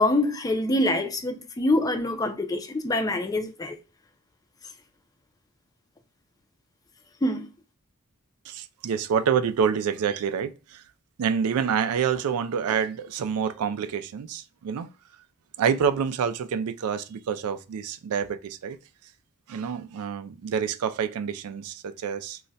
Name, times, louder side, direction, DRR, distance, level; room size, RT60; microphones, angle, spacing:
voice 1, 0.0-3.8 7.2-7.5, left 1 dB, 15° left, 0.4 m, -25 dB
voice 2, 8.5-10.8 11.2-14.9 15.6-18.8 19.5-22.4, right 7 dB, 70° right, 0.3 m, -27 dB
2.3 x 2.1 x 3.8 m
head